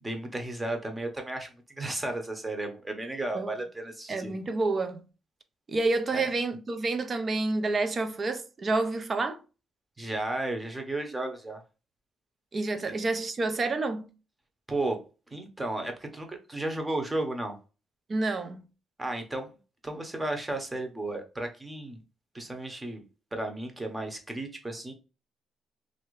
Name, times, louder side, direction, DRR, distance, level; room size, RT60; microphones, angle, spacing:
voice 1, 0.0-4.3 6.1-6.3 10.0-11.6 14.7-15.0 15.3-17.6 19.0-19.5 19.8-22.0 22.3-23.0 23.3-24.9, right 2 dB, 15° right, 0.9 m, -34 dB
voice 2, 4.1-5.0 5.7-9.4 12.5-14.1 18.1-18.6, right 3 dB, 40° right, 0.5 m, -29 dB
2.9 x 2.6 x 3.1 m
cardioid pair, 90°, 0 cm